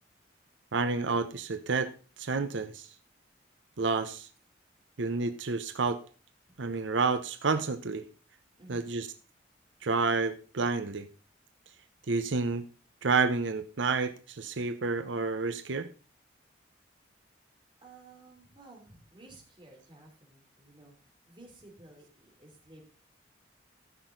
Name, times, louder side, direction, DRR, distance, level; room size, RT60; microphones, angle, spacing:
voice 1, 0.7-1.9 2.2-2.9 3.8-4.3 5.0-6.0 6.6-8.0 8.7-9.1 9.8-11.1 12.1-12.7 13.0-15.9, right 4 dB, 85° right, 10 dB, 0.8 m, -29 dB
voice 2, 8.6-9.0 17.8-22.8, right 2 dB, 25° right, 0 dB, 3.1 m, -54 dB
14.5 x 6.3 x 3.9 m, 0.38 s
head